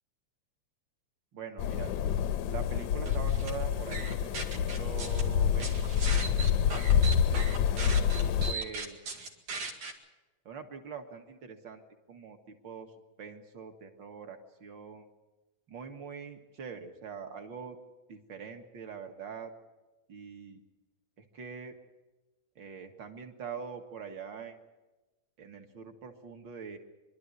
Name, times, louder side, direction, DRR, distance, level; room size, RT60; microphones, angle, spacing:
voice 1, 1.3-1.9 2.5-5.8 6.1-7.5 8.2-9.0 10.5-11.8 12.1-12.9 13.2-15.1 15.7-17.8 18.1-19.5 20.1-20.6 21.3-21.7 22.6-24.6 25.4-26.8, right 6 dB, 45° right, 5 dB, 2.1 m, -44 dB
sound 1, 1.6-8.5, left 8 dB, 75° left, 2.1 m, -28 dB
sound 2, 3.1-3.5 3.9-5.2 5.6-9.9, right 4 dB, 90° right, 3.6 m, -38 dB
25.5 x 12.0 x 9.6 m, 1.1 s
omnidirectional pair, 3.3 m